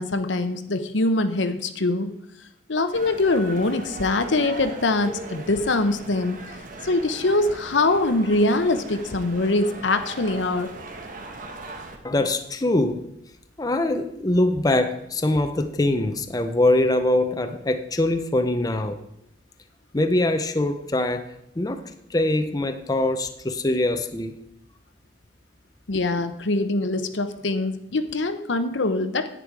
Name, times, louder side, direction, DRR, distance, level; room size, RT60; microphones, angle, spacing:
voice 1, 0.0-2.1 2.7-6.4 6.8-10.7 25.9-29.3, left 2 dB, 85° left, 9 dB, 0.9 m, -23 dB
sound 1, 2.9-12.0, right 2 dB, 45° right, 1.2 m, -39 dB
voice 2, 12.0-13.0 13.6-19.0 19.9-21.3 21.6-21.8 22.1-24.4, left 1 dB, 20° left, 7 dB, 0.6 m, -23 dB
10.0 x 9.0 x 4.8 m, 0.82 s
head